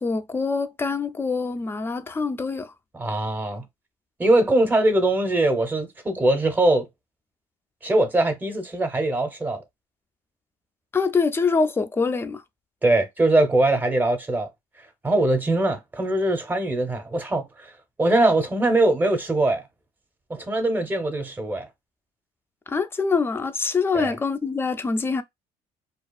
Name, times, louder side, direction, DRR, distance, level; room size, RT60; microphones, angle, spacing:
voice 1, 0.0-2.7 10.9-12.4 22.7-25.2, left 4 dB, 20° left, 0.3 m, -24 dB
voice 2, 2.9-3.7 4.2-6.9 7.8-9.6 12.8-14.5 15.0-17.7 18.0-19.6 20.3-21.7 23.9-24.1, right 2 dB, 15° right, 0.7 m, -22 dB
2.6 x 2.4 x 2.3 m
cardioid pair, 110°, 13 cm